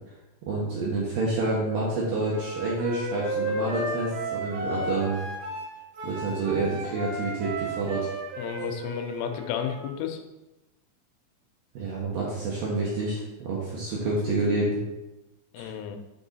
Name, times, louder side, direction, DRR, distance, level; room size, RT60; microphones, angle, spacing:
voice 1, 0.5-5.2 6.0-8.1 11.7-14.8 15.6-15.7, right 3 dB, 65° right, -5 dB, 2.3 m, -28 dB
Wind instrument woodwind instrument, 2.3-9.9, equal, 90° right, 1.7 m, -34 dB
voice 2, 8.4-10.2 15.5-16.0, left 8 dB, 85° left, 6 dB, 3.3 m, -32 dB
6.9 x 6.1 x 4.1 m, 1.0 s
omnidirectional pair, 5.6 m